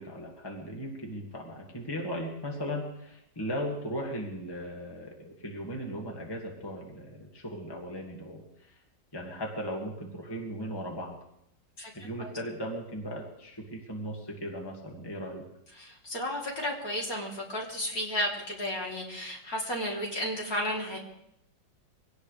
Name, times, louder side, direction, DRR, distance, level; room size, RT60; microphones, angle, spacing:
voice 1, 0.0-8.8 9.1-11.2 11.9-15.5, equal, 15° left, 0 dB, 2.1 m, -37 dB
voice 2, 15.8-21.0, equal, 50° left, -2 dB, 3.9 m, -33 dB
23.5 x 18.0 x 3.4 m, 0.78 s
omnidirectional pair, 2.0 m